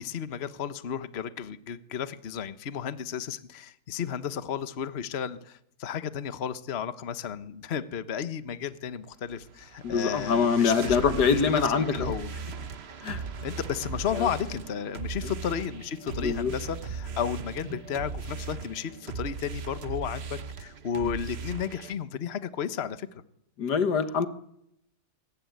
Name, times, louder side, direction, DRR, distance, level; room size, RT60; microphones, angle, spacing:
voice 1, 0.0-12.3 13.4-23.2, left 8 dB, 45° left, 13 dB, 1.2 m, -33 dB
sound 1, 9.3-21.9, right 5 dB, 45° right, 1.3 m, -38 dB
voice 2, 9.8-12.1 13.0-13.2 14.1-14.3 16.2-16.5 23.6-24.3, left 6 dB, 85° left, 11 dB, 1.9 m, -24 dB
sound 2, 12.8-18.9, right 3 dB, 90° right, 2.9 m, -50 dB
22.5 x 18.5 x 9.4 m, 0.77 s
omnidirectional pair, 1.7 m